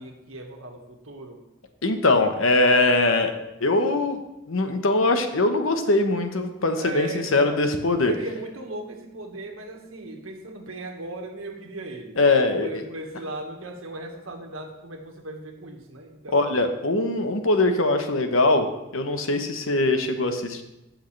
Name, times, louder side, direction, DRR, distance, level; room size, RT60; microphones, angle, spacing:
voice 1, 0.0-1.4 6.7-7.7 8.1-12.2 12.6-16.5 19.5-19.7, right 2 dB, 85° right, 2 dB, 1.5 m, -38 dB
voice 2, 1.8-3.3 3.6-4.2 4.5-8.1 12.2-12.7 16.3-18.7 18.9-20.6, left 2 dB, 80° left, 7 dB, 1.0 m, -21 dB
16.0 x 6.4 x 3.3 m, 0.93 s
head